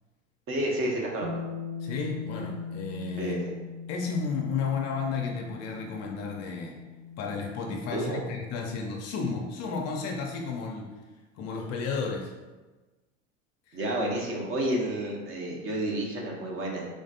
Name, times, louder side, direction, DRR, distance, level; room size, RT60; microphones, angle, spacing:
voice 1, 0.5-1.3 3.2-3.5 7.9-8.2 13.7-16.9, right 1 dB, 35° right, -1 dB, 1.0 m, -30 dB
Bass guitar, 1.2-7.5, left 5 dB, 80° right, 0.6 m, -40 dB
voice 2, 1.8-3.4 3.9-6.8 7.2-10.9 11.4-12.3 13.7-13.8, left 5 dB, 40° left, 1 dB, 0.6 m, -32 dB
3.6 x 3.2 x 2.7 m, 1.2 s
hypercardioid pair, 80°, 38 cm